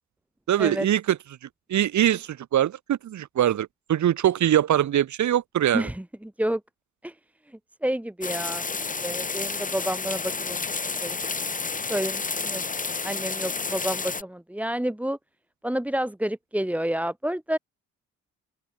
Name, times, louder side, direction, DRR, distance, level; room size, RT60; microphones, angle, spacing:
voice 1, 0.5-1.2 1.7-5.9, right 11 dB, 70° right, 4.6 m, -23 dB
voice 2, 5.7-6.6 7.0-7.2 7.5-8.7 9.0-10.6 11.0-11.2 11.9-15.2 15.6-17.6, right 1 dB, 5° right, 4.1 m, -29 dB
sound 1, 8.2-14.2, left 4 dB, 25° left, 2.5 m, -30 dB
open air
cardioid pair, 90°, 30 cm